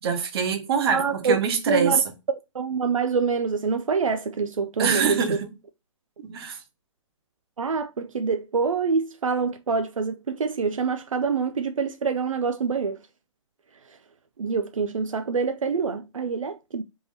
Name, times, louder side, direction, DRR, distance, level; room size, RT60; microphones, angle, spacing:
voice 1, 0.0-2.0 4.8-5.5 6.2-6.6, right 6 dB, 50° right, 1.3 m, -24 dB
voice 2, 0.9-1.4 1.7-2.0 2.5-5.2 7.6-13.0 14.4-16.8, right 5 dB, 90° right, 0.4 m, -25 dB
3.6 x 3.0 x 3.9 m
hypercardioid pair, 130°, 17 cm